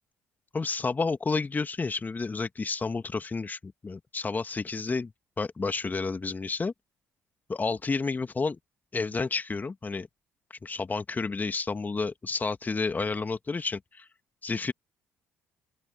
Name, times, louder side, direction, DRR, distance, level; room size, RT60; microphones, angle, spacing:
voice 1, 0.5-5.1 5.4-6.7 7.5-8.6 8.9-10.1 10.6-14.1 14.4-14.7, left 4 dB, 25° left, 2.3 m, -30 dB
open air
figure-of-eight pair, 50°, 7 cm